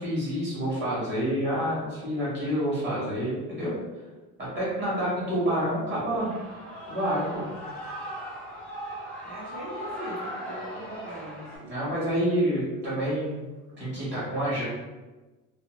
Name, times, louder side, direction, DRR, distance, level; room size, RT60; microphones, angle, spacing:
voice 1, 0.0-3.7 4.5-6.3 6.8-7.5 11.7-13.4 13.8-14.6, equal, 35° right, -8 dB, 1.4 m, -28 dB
Shout / Cheering, 6.2-11.6, equal, 5° left, 0.7 m, -38 dB
voice 2, 9.2-12.0, right 1 dB, 55° right, -7 dB, 1.3 m, -41 dB
2.7 x 2.1 x 3.0 m, 1.2 s
cardioid pair, 155°, 32 cm